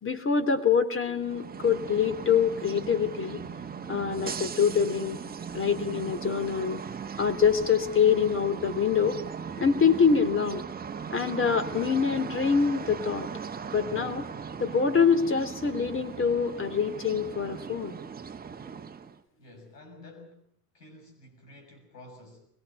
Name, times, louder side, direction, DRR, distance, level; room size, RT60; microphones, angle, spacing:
voice 1, 0.0-3.4 3.9-5.2 5.5-6.8 7.2-9.2 9.6-10.6 11.1-13.3 13.7-14.2 14.6-18.0, left 6 dB, 25° left, 3.3 m, -25 dB
sound 1, 1.1-19.2, right 6 dB, 20° right, 1.5 m, -38 dB
voice 2, 19.3-20.4 20.7-22.5, left 2 dB, 80° left, 6.5 m, -50 dB
23.5 x 23.0 x 5.8 m
figure-of-eight pair, 70°, 48 cm